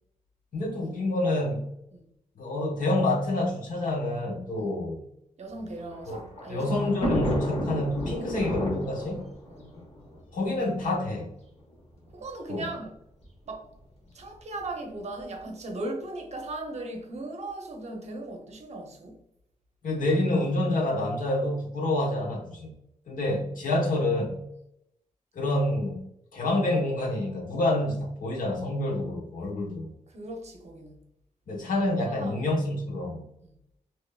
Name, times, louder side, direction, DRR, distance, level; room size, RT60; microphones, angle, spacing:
voice 1, 0.5-1.7 2.4-5.0 6.1-6.2 6.5-9.2 10.3-11.3 12.5-12.6 19.8-22.7 23.1-24.5 25.3-26.0 26.3-29.9 31.5-33.2, left 1 dB, 80° left, 1.0 m, -27 dB
voice 2, 5.4-6.9 9.5-9.8 12.1-13.0 13.5-13.7 14.1-19.2 23.7-23.8 30.1-31.0 32.1-32.4, right 2 dB, 55° right, 0.7 m, -38 dB
Thunder, 5.6-10.9 11.7-11.8 12.0-12.1 13.2-13.5, equal, 50° left, 1.0 m, -32 dB
3.4 x 3.0 x 2.3 m
wide cardioid pair, 145°, 14 cm